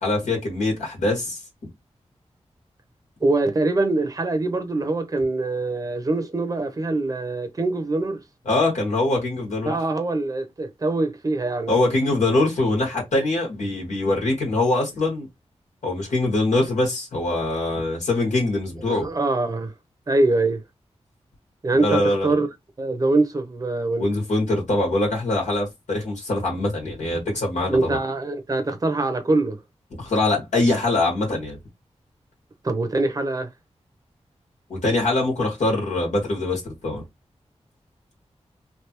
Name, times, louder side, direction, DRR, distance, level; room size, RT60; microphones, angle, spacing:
voice 1, 0.0-1.4 8.5-9.7 11.7-15.3 15.8-19.1 21.8-22.3 24.0-28.0 30.0-31.6 34.7-37.0, left 2 dB, 90° left, 1.7 m, -23 dB
voice 2, 3.2-8.2 9.7-11.7 18.9-19.7 20.1-20.6 21.6-22.5 22.8-24.1 27.7-29.6 32.6-33.5, right 2 dB, 30° right, 0.7 m, -23 dB
3.3 x 2.6 x 2.9 m
wide cardioid pair, 75°, 12 cm